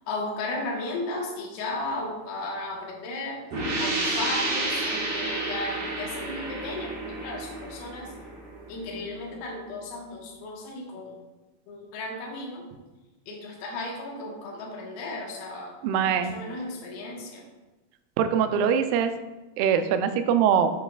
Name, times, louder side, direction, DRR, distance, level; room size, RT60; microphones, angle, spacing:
voice 1, 0.1-3.4 3.8-8.1 8.7-11.1 11.7-12.6 13.3-17.4, left 2 dB, 85° left, -1 dB, 3.2 m, -35 dB
sound 1, 3.5-9.0, right 2 dB, 55° right, 1.7 m, -30 dB
voice 2, 15.8-16.3 18.2-19.1 19.6-20.7, right 8 dB, 80° right, 9 dB, 2.4 m, -22 dB
8.9 x 6.4 x 2.3 m, 1.1 s
omnidirectional pair, 4.4 m